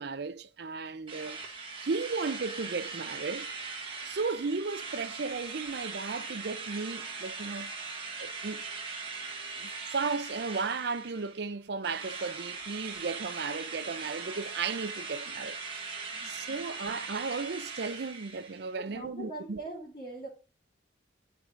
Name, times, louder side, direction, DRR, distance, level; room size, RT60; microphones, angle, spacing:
voice 1, 0.0-1.4 1.8-3.5 4.0-7.7 8.2-8.7 9.6-15.6 16.2-19.6, right 4 dB, 60° right, 0.5 m, -35 dB
Drill, 1.1-11.5 11.8-18.7, right 4 dB, 30° right, 1.2 m, -40 dB
voice 2, 16.1-16.6 18.8-20.3, right 2 dB, 35° left, 3.0 m, -42 dB
12.5 x 4.8 x 2.5 m
head